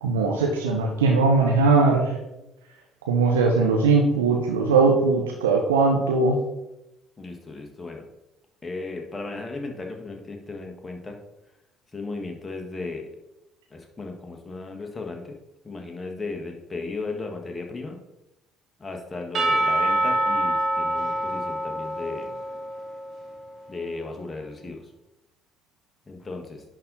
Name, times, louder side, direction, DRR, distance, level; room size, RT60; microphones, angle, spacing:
voice 1, 0.0-2.1 3.1-6.4, right 4 dB, 80° right, 0 dB, 0.7 m, -20 dB
voice 2, 7.2-8.1 8.6-11.2 11.9-13.0 13.7-15.4 15.6-18.0 18.8-22.3 23.7-24.9 26.1-26.6, left 3 dB, 25° left, 2 dB, 1.6 m, -35 dB
Percussion / Church bell, 19.3-23.2, right 1 dB, 50° right, 1.4 m, -25 dB
10.5 x 4.0 x 4.0 m, 0.94 s
figure-of-eight pair, 50°, 0 cm